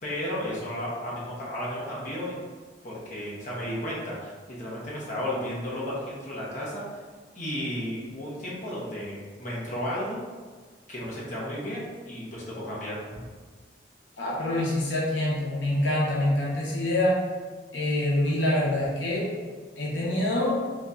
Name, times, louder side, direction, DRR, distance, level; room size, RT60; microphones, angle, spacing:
voice 1, 0.0-2.4 2.8-6.8 7.3-10.2 10.9-13.2, equal, 45° left, -6 dB, 1.1 m, -33 dB
voice 2, 14.2-17.2 17.7-19.3 19.8-20.6, left 1 dB, 85° left, -5 dB, 0.8 m, -25 dB
3.7 x 2.8 x 3.7 m, 1.5 s
head